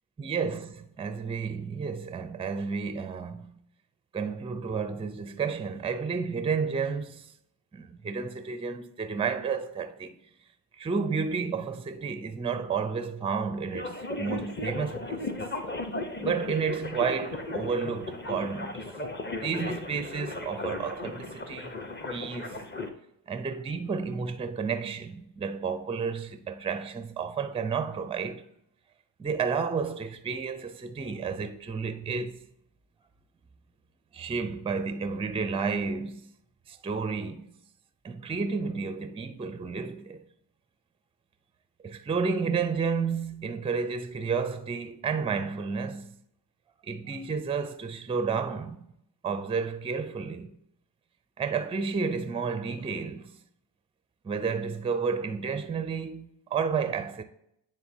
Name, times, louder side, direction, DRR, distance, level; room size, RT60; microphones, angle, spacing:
voice 1, 0.2-3.6 4.1-7.3 7.7-10.2 10.8-15.3 16.2-18.8 19.3-21.8 22.1-22.6 23.3-28.4 29.2-32.4 34.1-36.2 36.7-37.5 38.0-40.2 41.8-46.1 46.8-48.8 49.2-50.6 51.4-53.3 54.2-57.2, right 5 dB, 15° right, 0.4 m, -31 dB
sound 1, 13.7-22.9, left 2 dB, 25° left, 0.8 m, -36 dB
9.4 x 3.7 x 2.7 m
supercardioid pair, 60°, 47 cm